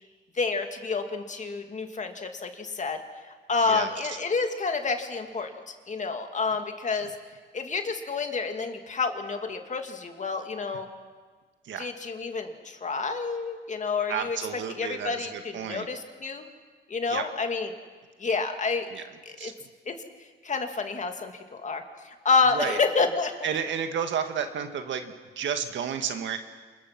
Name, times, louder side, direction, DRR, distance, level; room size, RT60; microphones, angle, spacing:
voice 1, 0.3-3.0 3.5-7.1 7.5-10.9 11.8-14.4 14.8-16.5 16.9-17.7 18.2-18.9 19.4-19.5 19.9-20.0 20.4-23.5, left 4 dB, 35° left, 5 dB, 2.5 m, -29 dB
voice 2, 3.6-4.2 11.6-11.9 14.1-15.9 17.1-17.2 18.9-19.0 19.4-19.5 22.5-22.8 23.4-26.4, right 7 dB, 70° right, 7 dB, 1.9 m, -32 dB
27.0 x 22.0 x 6.1 m, 1.5 s
cardioid pair, 90°, 20 cm